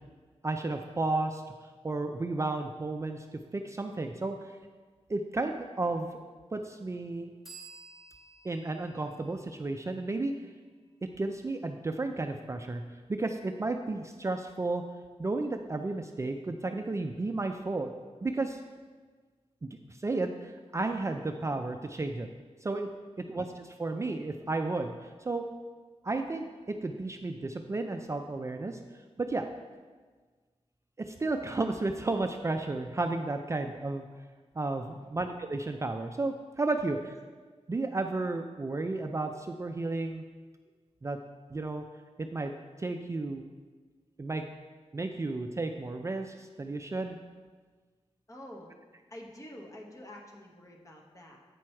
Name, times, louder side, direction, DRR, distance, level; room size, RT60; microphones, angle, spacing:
voice 1, 0.4-1.4 1.8-4.4 5.1-6.1 6.5-7.3 8.4-10.3 11.2-12.8 13.1-14.8 15.2-17.9 18.2-18.6 19.6-22.3 22.6-22.9 23.3-25.5 26.0-28.8 29.2-29.5 31.0-34.0 34.6-37.2 37.7-40.2 41.0-41.2 41.5-41.8 42.2-42.5 42.8-43.4 44.2-44.4 44.9-47.2, right 2 dB, 25° right, 5 dB, 0.4 m, -33 dB
sound 1, 7.4-11.0, right 3 dB, 5° right, 2.1 m, -54 dB
voice 2, 23.0-23.4 34.9-35.2 36.7-36.8 48.3-48.7 49.1-51.4, left 1 dB, 30° left, -1 dB, 1.2 m, -49 dB
8.4 x 6.2 x 4.4 m, 1.4 s
wide cardioid pair, 135°, 11 cm